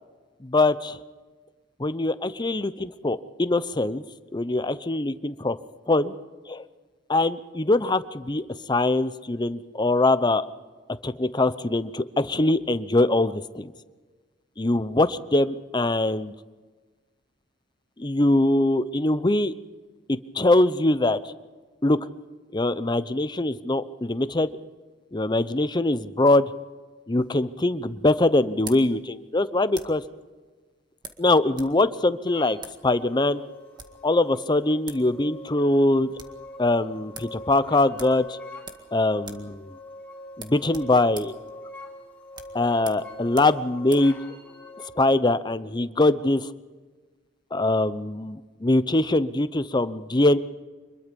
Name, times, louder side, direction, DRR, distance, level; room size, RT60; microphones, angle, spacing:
voice 1, 0.4-1.0 1.8-4.0 4.3-5.6 5.9-6.1 6.5-6.6 7.1-10.5 11.0-13.7 14.6-16.3 18.0-19.5 20.1-21.2 21.8-22.0 22.5-24.5 25.1-26.5 27.1-30.0 31.2-33.4 34.0-36.1 36.6-38.4 38.9-39.7 40.4-41.3 42.5-44.1 45.0-46.5 47.5-50.4, left 2 dB, 25° left, 13 dB, 0.8 m, -23 dB
sound 1, 27.2-30.1 31.0-31.8 32.0-32.1 32.6-32.8 33.6-34.1 34.6-34.7 34.9-35.1 35.4-35.5 35.8-36.4 36.8-36.9 37.1-37.4 37.9-38.9 39.2-39.5 39.8-39.9 40.3-44.1, right 4 dB, 25° right, 1.9 m, -44 dB
sound 2, 32.2-44.9, left 1 dB, 10° left, 3.7 m, -44 dB
25.0 x 22.0 x 5.4 m, 1.4 s
head